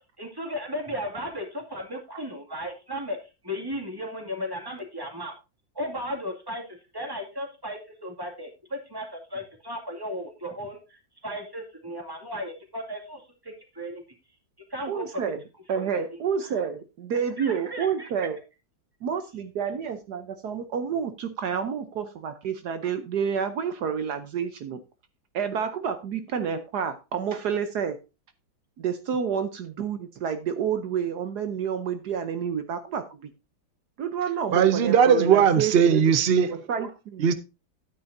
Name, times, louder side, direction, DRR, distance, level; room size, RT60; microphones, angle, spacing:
voice 1, 0.2-3.2 3.4-5.3 5.7-14.0 14.7-15.2 15.7-16.6 17.4-18.1, equal, 10° right, 2 dB, 2.2 m, -35 dB
voice 2, 14.9-15.4 15.7-18.4 19.0-24.8 25.3-28.0 28.8-33.3 34.0-36.0 36.5-37.2, right 7 dB, 65° right, 10 dB, 1.3 m, -29 dB
voice 3, 34.5-36.5 37.2-37.3, right 7 dB, 85° right, 13 dB, 0.5 m, -19 dB
12.0 x 9.2 x 2.6 m, 0.28 s
omnidirectional pair, 2.0 m